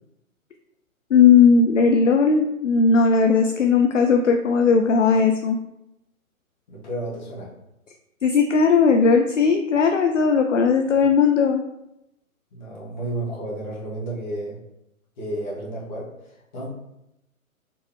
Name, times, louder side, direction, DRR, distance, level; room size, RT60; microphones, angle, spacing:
voice 1, 1.1-5.6 8.2-11.6, left 5 dB, 60° left, 4 dB, 0.5 m, -17 dB
voice 2, 6.7-7.5 10.8-11.0 12.5-14.6 15.2-16.7, right 1 dB, 30° left, -6 dB, 1.5 m, -32 dB
4.2 x 3.2 x 3.1 m, 0.86 s
figure-of-eight pair, 135°, 42 cm